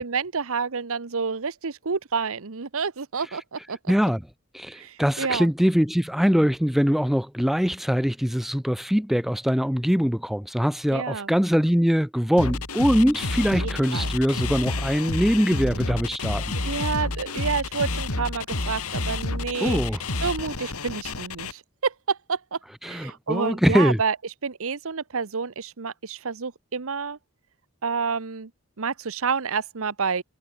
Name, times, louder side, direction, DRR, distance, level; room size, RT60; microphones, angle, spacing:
voice 1, 0.0-3.9 4.7-5.5 10.9-11.3 13.6-14.1 16.6-19.8 20.2-24.2 24.4-27.2 27.8-28.5 28.8-30.2, right 5 dB, 65° right, 1.0 m, -29 dB
voice 2, 3.9-4.2 4.5-16.5 19.6-20.0 22.8-24.0, equal, ahead, 0.5 m, -22 dB
sound 1, 12.4-21.5, left 2 dB, 85° left, 2.8 m, -29 dB
head